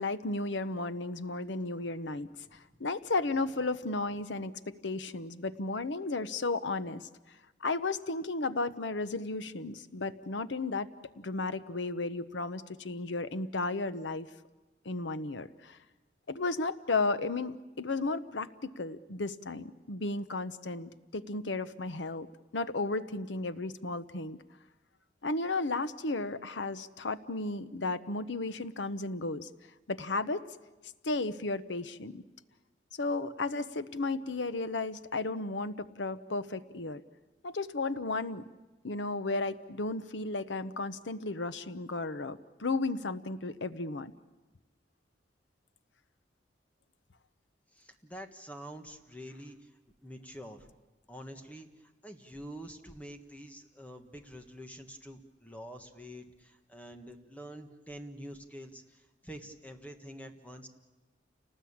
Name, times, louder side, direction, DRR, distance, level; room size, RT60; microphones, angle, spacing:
voice 1, 0.0-7.1 7.6-10.9 11.2-14.3 14.8-15.8 16.3-22.3 22.5-24.4 25.2-29.5 29.9-30.5 31.0-32.2 32.9-37.0 37.4-38.4 38.8-44.1, left 3 dB, 85° left, 13 dB, 1.0 m, -34 dB
voice 2, 47.7-49.7 50.0-50.7 51.1-60.7, equal, 10° left, 5 dB, 1.5 m, -47 dB
29.0 x 19.5 x 8.7 m, 1.2 s
head